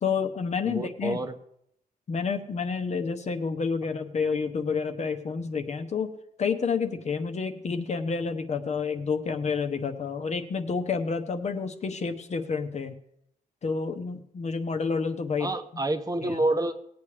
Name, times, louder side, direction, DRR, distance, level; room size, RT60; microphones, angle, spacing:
voice 1, 0.0-1.2 2.1-12.9 13.6-15.5 16.2-16.4, left 5 dB, 50° left, 8 dB, 0.9 m, -29 dB
voice 2, 0.7-1.3 15.4-16.7, right 2 dB, 25° right, 7 dB, 0.8 m, -28 dB
19.0 x 8.6 x 3.3 m, 0.73 s
wide cardioid pair, 125°, 15 cm